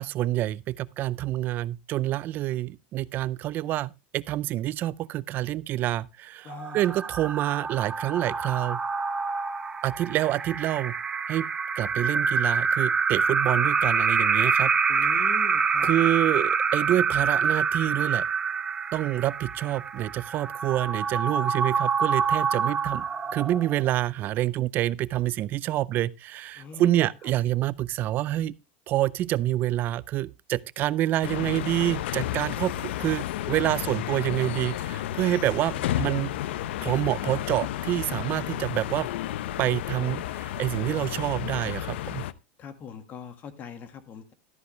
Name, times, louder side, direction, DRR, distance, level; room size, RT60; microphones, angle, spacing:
voice 1, 0.0-8.8 9.8-10.9 11.3-11.5 11.7-14.7 15.8-18.2 18.9-23.0 23.3-28.5 28.9-36.3 36.8-39.1 39.6-42.2, right 14 dB, 30° right, 0.5 m, -27 dB
voice 2, 6.4-7.0 14.9-15.9 26.6-27.1 35.6-36.1 42.6-44.3, left 6 dB, 30° left, 1.7 m, -42 dB
sound 1, 6.5-23.9, right 5 dB, 15° right, 0.9 m, -26 dB
sound 2, 31.2-42.3, left 13 dB, 85° left, 0.7 m, -32 dB
13.0 x 9.6 x 3.2 m
supercardioid pair, 160°, 6 cm